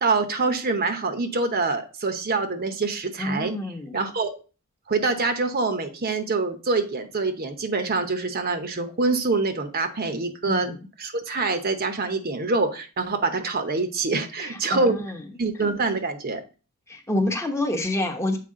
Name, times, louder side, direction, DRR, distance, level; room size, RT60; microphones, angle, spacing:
voice 1, 0.0-3.5 3.9-4.3 4.9-10.7 11.0-15.0 15.4-16.4, right 3 dB, 45° right, 7 dB, 0.9 m, -25 dB
voice 2, 3.2-4.0 10.4-10.7 14.4-15.2 16.9-18.4, left 1 dB, 15° left, 3 dB, 0.9 m, -27 dB
7.6 x 4.8 x 3.7 m, 0.34 s
head